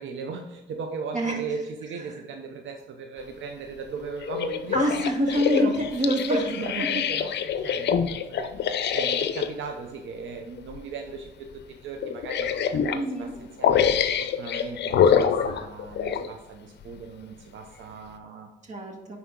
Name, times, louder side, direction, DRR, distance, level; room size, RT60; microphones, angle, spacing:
voice 1, 0.0-4.8 5.3-5.8 6.0-13.8 14.2-18.5, right 4 dB, 75° right, 3 dB, 0.8 m, -37 dB
sound 1, 4.2-9.5 10.6-10.8 11.2-11.3 12.0-13.0 13.6-16.3 16.9-17.0, left 7 dB, 60° left, 0.6 m, -25 dB
voice 2, 4.7-6.4 6.8-6.9 12.9-13.4 18.7-19.2, equal, 35° right, 2 dB, 2.0 m, -25 dB
10.0 x 4.2 x 3.8 m, 1.1 s
cardioid pair, 90°, 20 cm